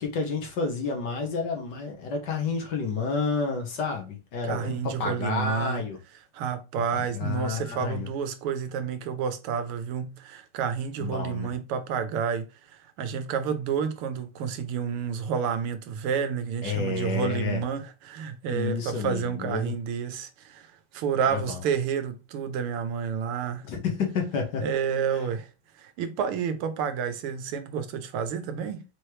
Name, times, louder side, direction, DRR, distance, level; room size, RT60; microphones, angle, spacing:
voice 1, 0.0-6.0 6.9-8.1 11.0-11.5 16.6-17.6 18.5-19.7 21.3-21.6 23.7-24.7, left 5 dB, 60° left, 1.6 m, -30 dB
voice 2, 4.4-5.8 6.3-23.7 24.6-28.8, right 7 dB, 90° right, 1.6 m, -30 dB
4.8 x 3.2 x 2.9 m
omnidirectional pair, 2.4 m